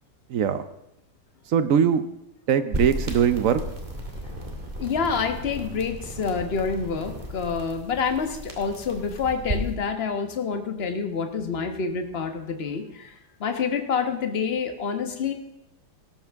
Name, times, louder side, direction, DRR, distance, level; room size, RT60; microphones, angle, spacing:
voice 1, 0.3-0.6 1.5-2.1 2.5-3.6, right 8 dB, 60° right, 11 dB, 0.9 m, -21 dB
sound 1, 2.7-9.7, equal, 25° right, 2.3 m, -34 dB
voice 2, 4.8-13.1 13.4-15.3, left 5 dB, 40° left, 6 dB, 1.2 m, -27 dB
18.0 x 13.0 x 3.5 m, 0.87 s
omnidirectional pair, 2.0 m